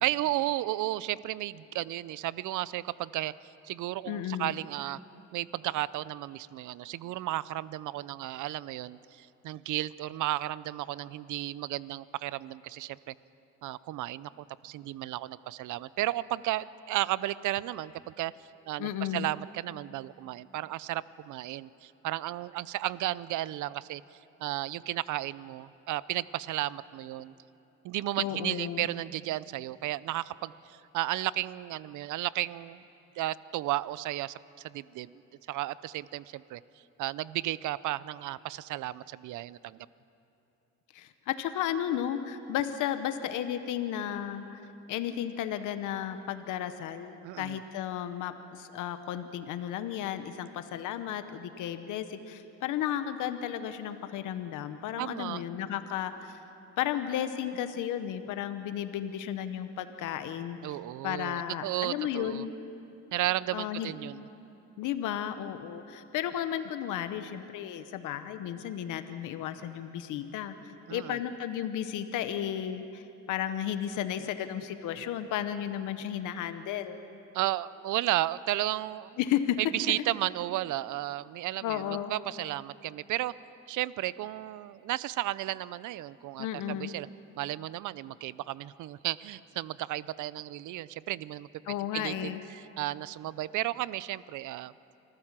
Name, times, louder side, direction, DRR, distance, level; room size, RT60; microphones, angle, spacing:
voice 1, 0.0-3.3 3.6-5.0 5.3-13.1 13.6-18.3 18.7-24.0 24.4-27.3 27.8-32.8 33.2-35.1 35.5-36.6 37.0-39.8 47.2-47.6 55.0-55.4 60.6-62.5 63.1-64.3 70.9-71.2 77.3-79.2 79.6-83.3 83.7-87.1 87.4-91.5 91.9-94.7, right 15 dB, 80° right, 19 dB, 0.6 m, -33 dB
voice 2, 4.1-4.5 18.8-19.3 28.2-28.8 40.9-44.6 44.9-56.4 56.8-60.6 61.0-62.5 63.5-64.0 64.8-70.5 70.9-73.0 73.3-77.0 79.2-79.6 81.6-82.1 86.4-86.9 91.6-92.4, left 10 dB, 90° left, 10 dB, 1.0 m, -33 dB
26.0 x 14.5 x 7.4 m, 2.8 s
cardioid pair, 90°, 30 cm